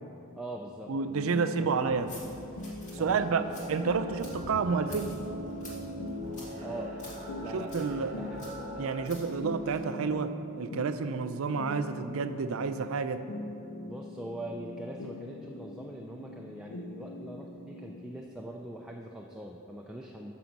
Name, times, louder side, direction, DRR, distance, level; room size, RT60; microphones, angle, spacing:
voice 1, 0.4-2.2 3.0-3.5 6.6-7.0 7.4-8.5 13.9-20.3, right 1 dB, 5° right, -1 dB, 0.4 m, -42 dB
sound 1, 0.8-18.2, left 2 dB, 75° left, 0.6 m, -43 dB
voice 2, 0.9-2.1 3.0-5.2 7.5-8.1 8.8-13.2, right 5 dB, 65° right, 11 dB, 0.4 m, -30 dB
coin jangle in pocket, 1.9-9.9, left 1 dB, 35° left, 1.9 m, -50 dB
sound 2, 3.3-9.1, right 1 dB, 30° right, 1.4 m, -42 dB
9.2 x 6.3 x 5.9 m, 2.8 s
head